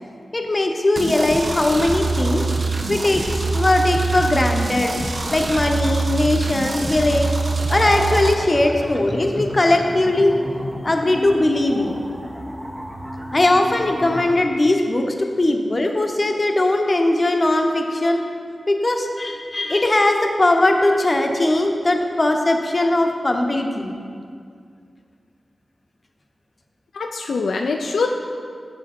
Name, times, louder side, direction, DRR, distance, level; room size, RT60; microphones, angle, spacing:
voice 1, 0.3-2.4 2.9-4.9 5.3-7.3 7.7-10.3 10.8-12.0 13.3-15.1 15.4-18.2 18.7-23.9, left 2 dB, 40° left, 4 dB, 0.8 m, -19 dB
sound 1, 1.0-8.3, right 3 dB, 55° right, 0.6 m, -24 dB
sound 2, 7.6-14.3, equal, 20° right, 0.9 m, -32 dB
voice 2, 26.9-28.1, left 4 dB, 85° left, 2 dB, 0.3 m, -24 dB
7.3 x 5.0 x 4.3 m, 2.2 s
cardioid pair, 40°, 0 cm